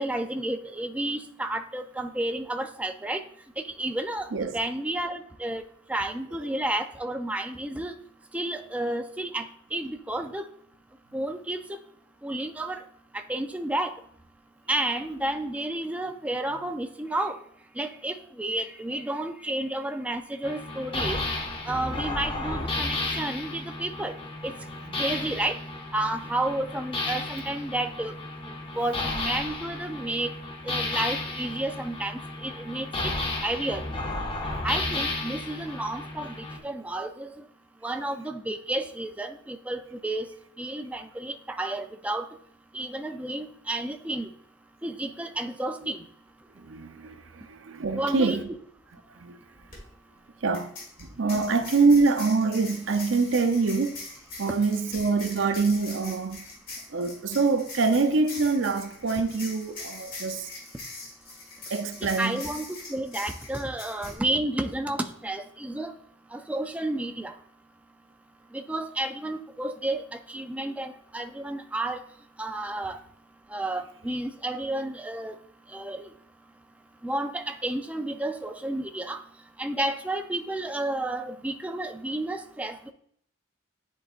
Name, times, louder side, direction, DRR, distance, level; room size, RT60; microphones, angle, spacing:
voice 1, 0.0-3.2 3.8-4.3 4.5-5.6 5.9-7.9 8.3-9.5 9.7-10.4 11.1-11.8 12.2-12.8 13.1-13.9 14.7-17.4 17.8-21.2 21.7-24.1 24.4-24.5 25.0-25.6 25.9-28.1 28.8-30.3 30.7-33.1 33.4-33.8 34.6-36.3 36.6-37.3 37.8-40.3 40.6-42.3 42.7-44.3 44.8-46.0 47.9-48.4 62.0-65.9 66.3-67.3 68.5-70.0 70.3-72.0 72.4-73.0 73.5-75.3 75.7-76.1 77.0-79.2 79.6-82.9, right 1 dB, 5° right, 0.4 m, -31 dB
sound 1, 20.4-36.6, left 2 dB, 25° left, 0.8 m, -33 dB
voice 2, 46.6-48.4 49.2-49.4 50.4-50.7 51.0-54.0 54.4-56.4 56.9-60.5 61.7-62.4, right 4 dB, 75° right, 0.6 m, -25 dB
sound 2, 49.5-49.8 50.5-64.2, left 3 dB, 45° left, 1.8 m, -42 dB
10.0 x 4.0 x 2.5 m
head